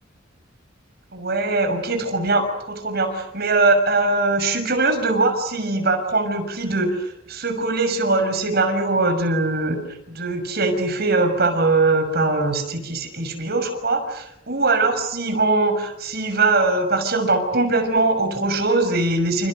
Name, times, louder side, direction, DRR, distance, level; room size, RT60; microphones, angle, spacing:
voice 1, 1.1-9.8 10.1-19.5, right 3 dB, 55° right, 7 dB, 6.3 m, -21 dB
29.0 x 29.0 x 6.7 m, 0.82 s
head